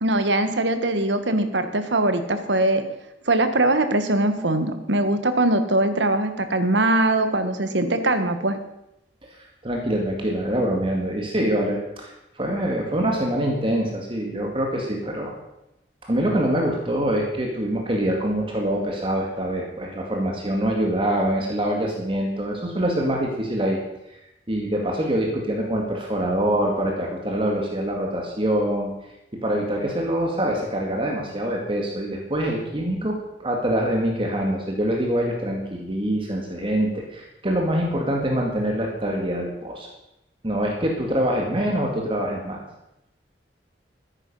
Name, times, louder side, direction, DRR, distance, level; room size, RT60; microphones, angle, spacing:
voice 1, 0.0-2.8 3.3-8.6, right 2 dB, 85° right, 9 dB, 1.4 m, -21 dB
voice 2, 9.6-12.1 12.4-15.3 16.0-23.8 24.5-28.9 29.4-39.9 40.4-42.6, right 1 dB, 30° right, 0 dB, 2.1 m, -24 dB
13.5 x 10.0 x 5.6 m, 0.86 s
head